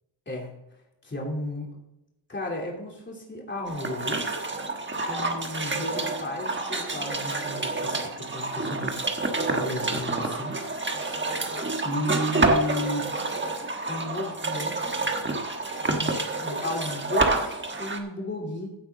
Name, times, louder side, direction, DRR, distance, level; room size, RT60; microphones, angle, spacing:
voice 1, 1.0-1.8 2.3-4.4 5.1-9.0 9.5-10.6 11.0-11.2 11.8-13.1 13.8-15.0 16.0-18.7, left 1 dB, 25° left, -2 dB, 3.2 m, -34 dB
sound 1, 3.7-18.0, right 3 dB, 25° right, 1.3 m, -28 dB
15.5 x 8.0 x 3.8 m, 0.89 s
wide cardioid pair, 165°, 47 cm